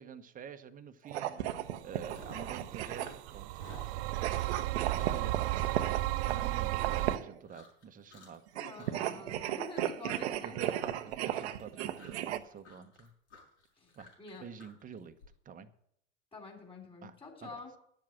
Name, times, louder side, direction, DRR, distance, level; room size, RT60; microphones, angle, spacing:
voice 1, 0.0-1.4 1.8-3.9 4.9-5.4 6.3-8.4 9.1-9.3 10.4-13.1 14.0-14.1 14.4-15.2 15.4-15.7 17.0-17.2 17.4-17.6, right 7 dB, 25° right, 9 dB, 1.0 m, -47 dB
sound 1, 1.0-3.4 4.1-7.4 8.5-12.4, right 12 dB, 70° right, 0.9 m, -36 dB
Chewing mastication, 1.1-1.3 1.6-2.6 2.8-7.2 7.5-7.8 8.1-8.5 8.8-15.3, left 2 dB, 80° left, 6.3 m, -54 dB
sound 2, 1.9-7.2, right 17 dB, 50° right, 0.4 m, -34 dB
voice 2, 8.5-10.6 13.8-13.9 14.2-14.5 16.3-17.7, left 3 dB, 15° left, 1 dB, 3.6 m, -47 dB
11.5 x 7.5 x 7.4 m, 0.71 s
hypercardioid pair, 95°, 35 cm